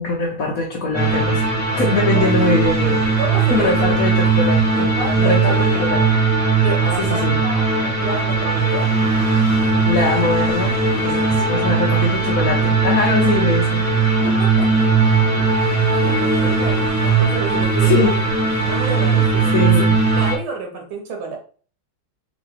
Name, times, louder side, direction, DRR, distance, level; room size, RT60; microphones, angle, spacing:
voice 1, 0.0-1.4 1.7-3.0 3.5-4.9 5.2-6.0 7.0-7.4 9.9-13.9 17.8-18.1 19.5-20.0, left 3 dB, 60° left, 0 dB, 0.9 m, -22 dB
sound 1, 0.9-20.3, right 4 dB, 15° right, 0.7 m, -18 dB
voice 2, 3.2-3.8 4.7-5.4 5.7-6.1 6.6-9.0 11.3-11.6 14.2-14.9 15.9-18.1 18.6-19.8 20.1-21.4, right 4 dB, 90° right, 1 dB, 1.9 m, -29 dB
3.8 x 3.1 x 3.1 m, 0.41 s
omnidirectional pair, 2.2 m